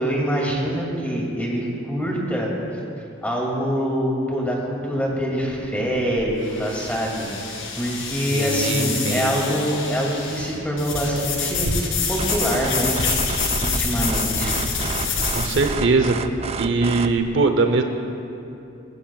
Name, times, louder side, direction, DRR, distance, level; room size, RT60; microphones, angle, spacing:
voice 1, 0.0-2.5 3.2-13.0 13.6-14.5, equal, 10° left, -3 dB, 2.4 m, -25 dB
sound 1, 5.4-15.7, left 4 dB, 80° left, 2.1 m, -27 dB
voice 2, 8.3-9.4 15.3-16.2 16.6-17.8, right 3 dB, 65° right, 6 dB, 0.7 m, -21 dB
sound 2, 12.2-17.2, right 4 dB, 30° right, 0.4 m, -30 dB
20.5 x 14.5 x 2.4 m, 2.7 s
head